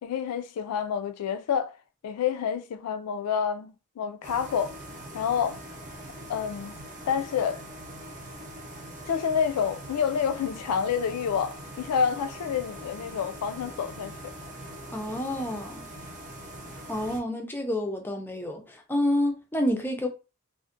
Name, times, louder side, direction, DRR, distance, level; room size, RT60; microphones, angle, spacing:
voice 1, 0.0-1.8 2.0-4.8 5.1-5.6 6.3-6.8 7.1-7.6 9.1-14.3, left 7 dB, 85° left, 0.3 m, -28 dB
sound 1, 4.2-17.2, right 1 dB, 35° right, 0.6 m, -42 dB
voice 2, 14.9-15.9 16.7-20.1, left 1 dB, 10° left, 0.4 m, -29 dB
2.5 x 2.0 x 2.5 m
head